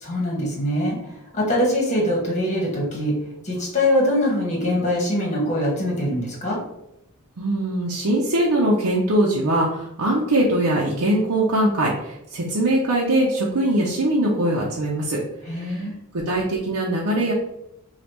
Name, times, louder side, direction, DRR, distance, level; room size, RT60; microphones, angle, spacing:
voice 1, 0.0-3.1 3.4-6.6 15.5-15.9, left 1 dB, 35° left, -2 dB, 1.3 m, -23 dB
voice 2, 7.4-15.2 15.5-15.9 16.1-17.3, right 1 dB, 85° right, -4 dB, 0.7 m, -21 dB
5.2 x 2.4 x 2.9 m, 0.84 s
head